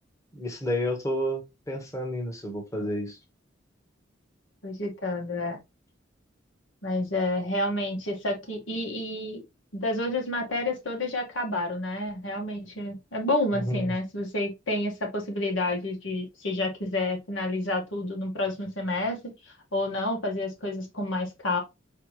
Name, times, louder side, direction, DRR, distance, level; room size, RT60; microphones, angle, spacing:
voice 1, 0.3-1.4 1.7-3.2 13.5-13.9, equal, 15° left, 1.3 m, -30 dB
voice 2, 4.6-5.6 6.8-9.4 9.7-19.3 19.7-21.6, left 1 dB, 75° left, 1.7 m, -29 dB
4.8 x 3.3 x 3.1 m
head